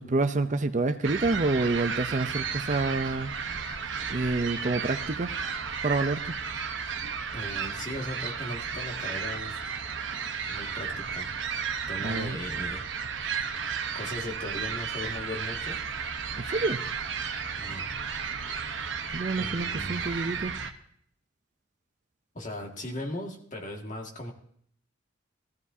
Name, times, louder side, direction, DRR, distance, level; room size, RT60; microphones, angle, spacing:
voice 1, 0.0-3.4 4.1-5.3 5.8-6.4 12.0-12.4 16.3-16.8 19.1-20.5, right 3 dB, 40° right, 9 dB, 0.6 m, -28 dB
sound 1, 1.0-20.7, right 6 dB, 70° right, 0.9 m, -33 dB
voice 2, 7.3-9.6 10.5-11.3 11.9-12.8 13.9-15.8 17.6-17.9 19.4-20.0 22.3-24.3, left 1 dB, 40° left, 1 dB, 2.0 m, -38 dB
18.5 x 14.5 x 2.8 m, 0.64 s
head